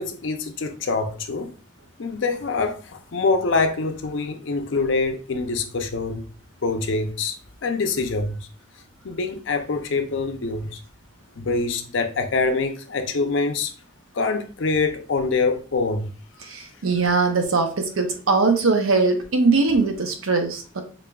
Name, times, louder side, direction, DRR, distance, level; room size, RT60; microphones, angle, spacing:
voice 1, 0.0-1.5 2.0-6.2 6.6-8.4 9.0-10.8 11.4-13.7 14.1-16.1, left 3 dB, 65° left, 0.5 m, -25 dB
voice 2, 16.5-20.8, right 3 dB, 90° right, 0.8 m, -21 dB
4.9 x 2.6 x 2.3 m
head